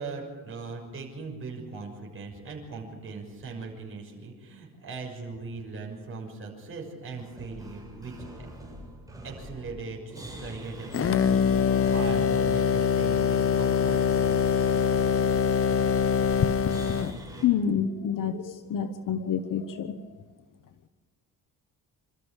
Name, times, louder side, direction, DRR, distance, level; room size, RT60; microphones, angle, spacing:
voice 1, 0.0-8.1 9.2-14.4, right 4 dB, 35° right, 0 dB, 6.2 m, -39 dB
sound 1, 7.1-17.5, right 1 dB, 10° right, 7.2 m, -44 dB
sound 2, 10.9-17.2, left 7 dB, 35° left, 0.8 m, -24 dB
voice 2, 17.4-20.0, left 8 dB, 55° left, 10 dB, 1.1 m, -28 dB
27.0 x 13.5 x 7.4 m, 1.5 s
cardioid pair, 115°, 37 cm